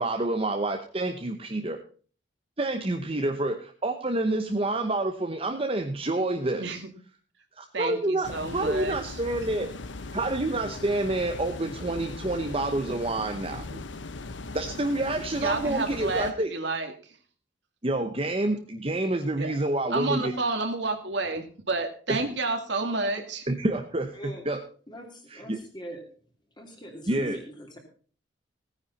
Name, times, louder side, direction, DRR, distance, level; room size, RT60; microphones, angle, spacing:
voice 1, 0.0-1.8 2.6-6.8 7.6-9.7 10.1-13.6 14.5-16.5 17.8-20.3 22.1-22.2 23.5-24.6 25.3-25.6 27.1-27.4, right 2 dB, 30° right, 4 dB, 0.9 m, -28 dB
voice 2, 6.6-6.9 7.7-9.2 13.6-13.8 15.4-17.2 19.4-19.5 19.9-23.5, right 3 dB, 65° right, 5 dB, 2.1 m, -30 dB
sound 1, 8.2-16.3, left 3 dB, 70° left, 0.9 m, -39 dB
voice 3, 24.9-26.0 26.6-27.8, equal, 25° left, 2 dB, 3.0 m, -41 dB
16.5 x 9.7 x 4.1 m, 0.42 s
head